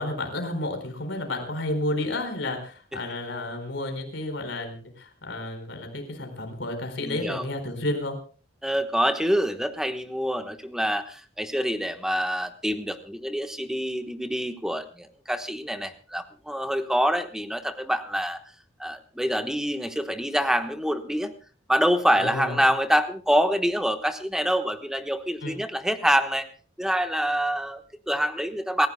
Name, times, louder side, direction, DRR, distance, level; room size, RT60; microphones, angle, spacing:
voice 1, 0.0-8.2 22.2-22.6 25.4-25.5, left 1 dB, 75° left, 5 dB, 4.5 m, -31 dB
voice 2, 7.0-7.4 8.6-18.4 18.8-21.3 21.7-26.5 26.8-28.9, equal, 5° right, 7 dB, 1.1 m, -26 dB
27.5 x 15.0 x 2.2 m, 0.38 s
head